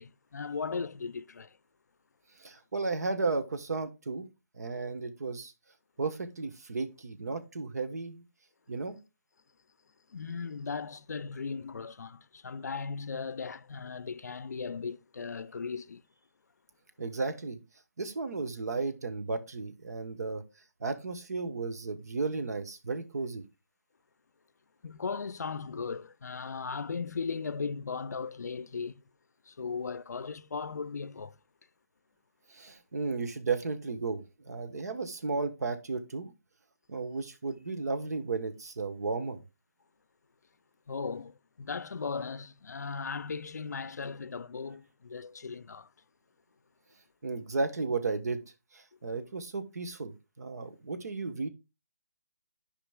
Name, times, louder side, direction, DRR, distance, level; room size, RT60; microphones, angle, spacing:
voice 1, 0.0-1.5 10.1-16.0 24.8-28.9 29.5-31.3 40.9-45.9, left 5 dB, 85° left, 0.5 m, -37 dB
voice 2, 2.4-4.3 4.6-5.5 6.0-8.2 8.7-9.0 17.0-17.6 18.0-20.4 20.8-23.4 32.5-36.3 36.9-39.4 47.2-48.4 48.7-51.5, right 3 dB, 75° right, 1.1 m, -34 dB
12.0 x 5.0 x 2.2 m
hypercardioid pair, 155°, 9 cm